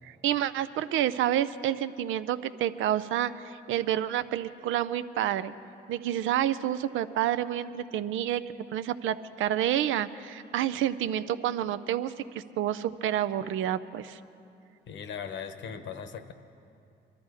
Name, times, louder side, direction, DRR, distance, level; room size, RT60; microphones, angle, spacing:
voice 1, 0.0-5.5 5.9-8.4 8.7-14.2, right 11 dB, 80° right, 14 dB, 0.5 m, -29 dB
voice 2, 14.9-16.3, left 7 dB, 70° left, 9 dB, 1.0 m, -38 dB
22.0 x 13.0 x 4.8 m, 2.6 s
cardioid pair, 90°, 20 cm